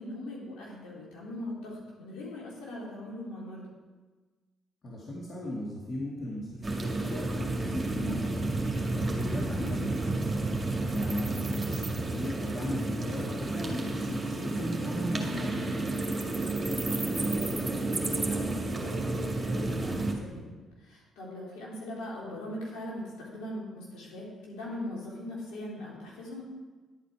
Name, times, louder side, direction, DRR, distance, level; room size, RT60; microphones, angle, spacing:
voice 1, 0.0-3.6 9.6-9.7 16.8-26.4, left 1 dB, 70° left, -5 dB, 3.4 m, -40 dB
voice 2, 4.8-8.5 8.9-10.4 10.9-15.9, left 1 dB, 45° left, -3 dB, 2.0 m, -37 dB
sound 1, 6.6-20.1, right 2 dB, 20° right, 2.1 m, -31 dB
11.0 x 8.4 x 4.7 m, 1.3 s
hypercardioid pair, 45°, 0 cm